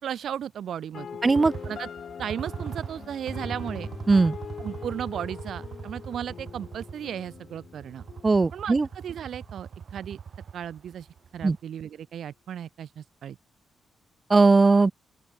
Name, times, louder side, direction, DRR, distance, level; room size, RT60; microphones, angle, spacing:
voice 1, 0.0-1.1 1.6-1.9 2.2-3.9 4.6-8.0 8.5-8.8 9.0-10.2 10.5-11.1 11.3-13.4, right 9 dB, 75° right, 3.3 m, -35 dB
sound 1, 0.9-8.9, left 7 dB, 55° left, 3.3 m, -43 dB
voice 2, 1.2-1.5 4.1-4.4 8.2-8.9 11.4-11.6 14.3-14.9, right 3 dB, 25° right, 0.5 m, -19 dB
sound 2, 1.3-11.6, right 7 dB, 55° right, 3.4 m, -40 dB
Bass guitar, 3.3-9.5, left 3 dB, 20° left, 3.9 m, -46 dB
open air
cardioid pair, 115°, 0 cm